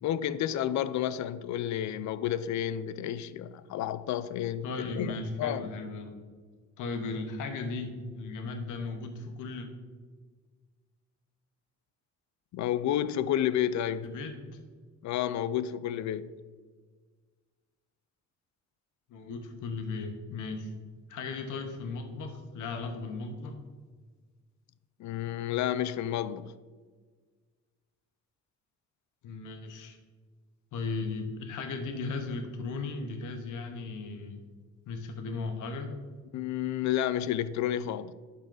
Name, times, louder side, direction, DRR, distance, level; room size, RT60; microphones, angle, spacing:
voice 1, 0.0-5.7 12.5-14.1 15.0-16.3 25.0-26.5 36.3-38.1, left 11 dB, 70° left, 0.4 m, -31 dB
voice 2, 4.6-6.2 6.8-9.7 14.0-14.4 19.1-20.7 21.1-23.6 29.2-30.0 30.7-34.4 34.9-35.9, left 3 dB, 85° left, 1.1 m, -36 dB
11.5 x 4.1 x 3.9 m
cardioid pair, 90°, 30 cm